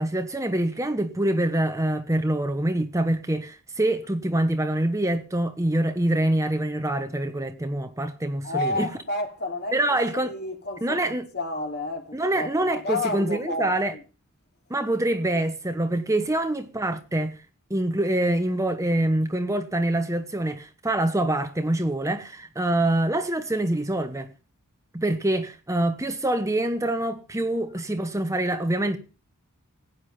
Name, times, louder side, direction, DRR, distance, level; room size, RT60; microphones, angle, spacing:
voice 1, 0.0-8.9 9.7-10.3 10.8-11.3 12.1-13.9 14.7-17.4 17.7-24.3 24.9-29.0, right 1 dB, 15° right, 1.0 m, -25 dB
voice 2, 8.4-14.0, left 2 dB, 50° left, 3.1 m, -31 dB
16.5 x 9.7 x 5.6 m
head